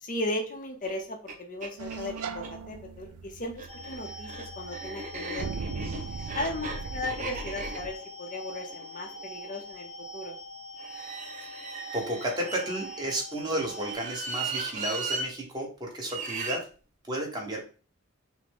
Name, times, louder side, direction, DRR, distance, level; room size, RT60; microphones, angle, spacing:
voice 1, 0.0-5.5 6.3-10.4, left 2 dB, 35° left, 2 dB, 0.6 m, -36 dB
sound 1, 0.8-0.9 1.3-1.4 1.6-2.5 3.4-9.6 10.8-13.1 13.7-15.3 16.1-16.6, right 3 dB, 35° right, 0.6 m, -38 dB
sound 2, 1.8-7.9, right 4 dB, 75° right, 0.4 m, -39 dB
sound 3, 3.7-13.9, equal, 80° left, 1.0 m, -43 dB
voice 2, 11.9-16.6 17.1-17.6, right 1 dB, 20° right, -1 dB, 1.1 m, -32 dB
5.8 x 2.1 x 3.5 m, 0.37 s
head